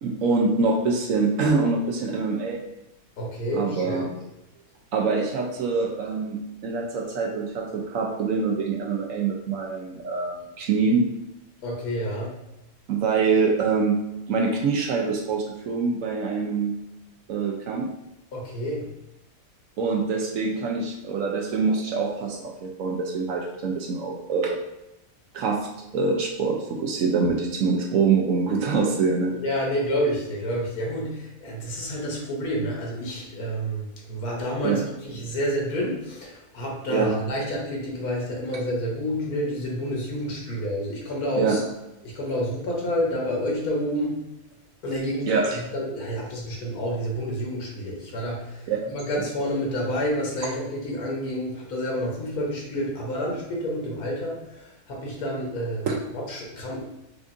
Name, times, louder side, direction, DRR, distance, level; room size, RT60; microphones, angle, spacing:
voice 1, 0.0-2.6 3.5-4.1 4.9-11.1 12.9-16.8 17.3-17.9 19.8-24.6 25.3-25.7 25.9-29.3 34.6-34.9 36.9-37.1 41.4-41.6 45.3-45.6 48.7-48.9 55.9-56.0, right 4 dB, 70° right, 0 dB, 0.9 m, -25 dB
voice 2, 3.2-4.1 11.6-12.3 18.3-18.9 29.4-41.6 42.0-44.2 44.8-45.3 45.5-56.8, equal, 85° left, -2 dB, 1.4 m, -29 dB
5.0 x 2.5 x 2.5 m, 0.90 s
omnidirectional pair, 1.6 m